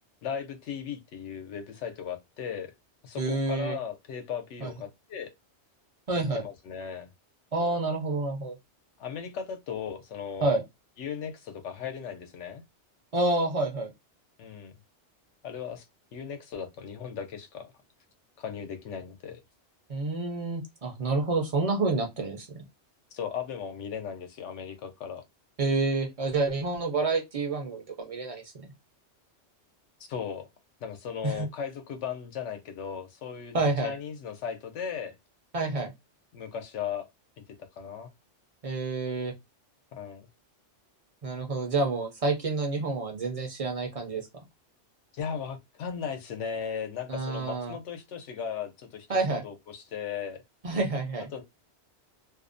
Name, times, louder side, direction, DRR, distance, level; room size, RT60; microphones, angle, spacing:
voice 1, 0.2-2.7 3.0-5.3 6.1-7.1 9.0-10.5 11.0-12.6 14.4-14.7 15.4-15.8 16.1-17.7 18.4-19.4 23.1-25.2 30.0-30.5 30.8-35.2 36.3-37.1 37.8-38.1 39.9-40.3 45.1-50.4 51.3-51.4, left 7 dB, 85° left, 0.9 m, -37 dB
voice 2, 3.2-3.8 4.6-4.7 6.1-6.4 7.5-8.5 10.4-10.6 13.1-13.9 19.9-22.5 25.6-28.4 31.2-31.5 33.5-33.9 35.5-35.9 38.6-39.3 41.2-44.2 47.1-47.8 49.1-49.4 50.6-51.3, right 3 dB, 40° right, 0.5 m, -28 dB
2.5 x 2.0 x 2.5 m
omnidirectional pair, 1.2 m